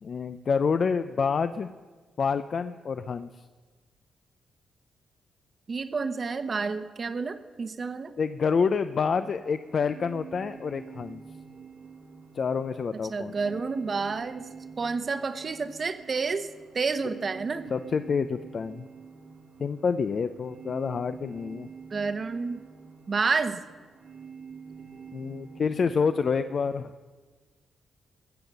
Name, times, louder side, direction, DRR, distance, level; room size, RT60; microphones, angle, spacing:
voice 1, 0.0-1.7 2.2-3.3 8.2-11.2 12.3-13.5 17.7-18.9 19.6-21.7 25.1-26.9, left 5 dB, 55° left, 11 dB, 0.5 m, -28 dB
voice 2, 5.7-8.1 13.1-14.5 14.8-17.7 21.9-22.6 23.1-23.6, right 4 dB, 45° right, 10 dB, 1.0 m, -30 dB
sound 1, 8.9-26.8, right 6 dB, 85° right, 1.9 m, -47 dB
20.5 x 7.7 x 6.7 m, 1.4 s
cardioid pair, 65°, 0 cm